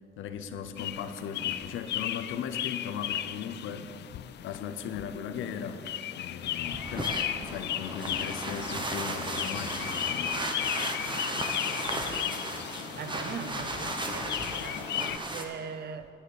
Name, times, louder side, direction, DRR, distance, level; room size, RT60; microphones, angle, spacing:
voice 1, 0.2-3.9 4.4-5.8 6.2-10.4, left 7 dB, 85° left, 9 dB, 0.8 m, -37 dB
sound 1, 0.8-15.2, left 12 dB, 60° left, 0.4 m, -35 dB
sound 2, 6.6-15.4, right 2 dB, 25° right, 1.2 m, -35 dB
voice 2, 12.9-16.1, right 6 dB, 55° right, 12 dB, 0.7 m, -41 dB
10.0 x 9.4 x 6.5 m, 2.6 s
cardioid pair, 90°, 20 cm